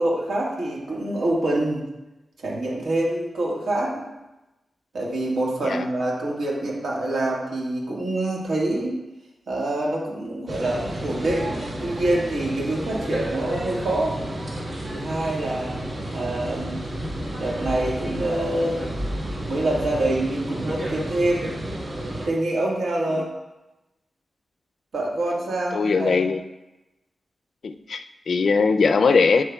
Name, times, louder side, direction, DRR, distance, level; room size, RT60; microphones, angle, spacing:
voice 1, 0.0-1.8 2.4-4.1 4.9-9.0 9.5-14.2 14.9-15.8 16.1-16.8 17.4-18.8 19.5-21.5 22.2-23.3 24.9-26.3, right 1 dB, 85° right, -3 dB, 1.7 m, -26 dB
sound 1, 10.5-22.3, right 1 dB, 55° right, 1.5 m, -31 dB
voice 2, 25.7-26.4 27.6-29.4, left 4 dB, 65° left, 9 dB, 0.4 m, -20 dB
8.1 x 7.2 x 2.3 m, 1.0 s
wide cardioid pair, 125°, 0 cm